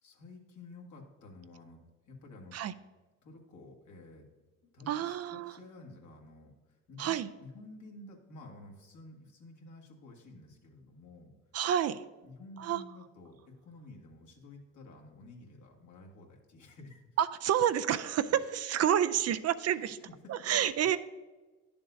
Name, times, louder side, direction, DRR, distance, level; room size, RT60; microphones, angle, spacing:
voice 1, 0.0-2.6 3.2-4.3 4.7-11.3 12.2-17.0 18.3-18.4 19.7-19.9 20.2-20.6, left 2 dB, 65° left, 1 dB, 1.8 m, -52 dB
voice 2, 4.9-5.5 7.0-7.3 11.5-12.0 12.6-12.8 17.2-20.0 20.3-21.0, right 10 dB, 50° right, 13 dB, 0.4 m, -29 dB
10.5 x 7.0 x 2.6 m, 1.3 s
supercardioid pair, 70°, 32 cm